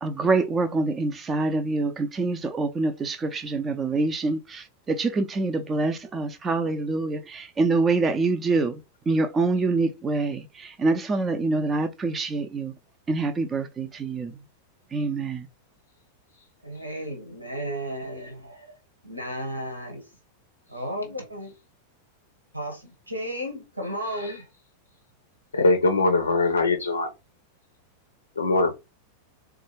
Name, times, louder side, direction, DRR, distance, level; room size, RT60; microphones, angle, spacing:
voice 1, 0.0-8.8 9.1-12.7 13.1-14.4 14.9-15.5, right 3 dB, 20° right, 0.4 m, -25 dB
voice 2, 16.6-18.7 19.0-20.0 20.7-21.5 22.5-24.4, equal, 85° right, 1.3 m, -34 dB
voice 3, 25.5-27.1 28.4-28.7, left 2 dB, 75° left, 0.5 m, -22 dB
3.9 x 2.3 x 3.1 m
figure-of-eight pair, 90°, 0 cm